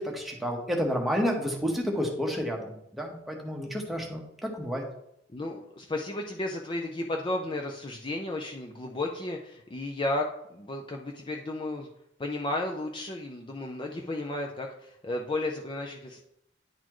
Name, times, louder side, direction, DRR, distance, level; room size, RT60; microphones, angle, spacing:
voice 1, 0.0-4.8, equal, ahead, -1 dB, 1.1 m, -30 dB
voice 2, 5.3-11.9 12.2-16.2, left 2 dB, 25° left, 1 dB, 0.5 m, -33 dB
10.0 x 4.1 x 3.0 m, 0.79 s
head